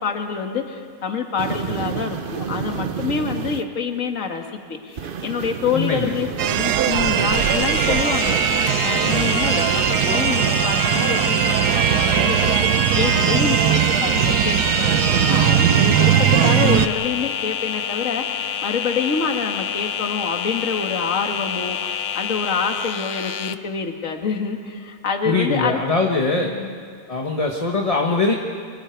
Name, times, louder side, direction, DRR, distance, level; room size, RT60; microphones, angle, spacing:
voice 1, 0.0-25.8 26.4-26.7, left 5 dB, 55° left, 4 dB, 2.0 m, -27 dB
sound 1, 1.4-3.6 5.0-10.5, right 6 dB, 45° right, 0.8 m, -31 dB
voice 2, 5.7-6.1 25.2-26.5 27.1-28.3, left 3 dB, 25° left, 1 dB, 1.3 m, -21 dB
sound 2, 6.4-16.9, right 10 dB, 80° right, 1.3 m, -19 dB
sound 3, 7.3-23.6, left 8 dB, 70° left, 0.4 m, -28 dB
28.0 x 25.0 x 4.6 m, 2.2 s
omnidirectional pair, 1.7 m